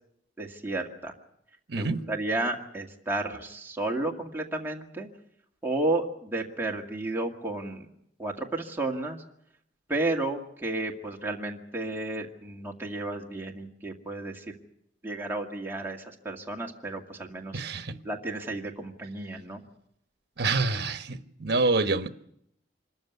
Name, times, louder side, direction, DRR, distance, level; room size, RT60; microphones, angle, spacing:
voice 1, 0.4-1.1 1.8-5.1 5.6-7.9 8.2-9.2 9.9-14.6 15.0-17.6 18.1-19.6, right 2 dB, 15° right, 2.0 m, -32 dB
voice 2, 1.7-2.0 17.5-18.0 20.4-22.1, right 3 dB, 65° right, 1.2 m, -27 dB
26.0 x 14.0 x 9.5 m
head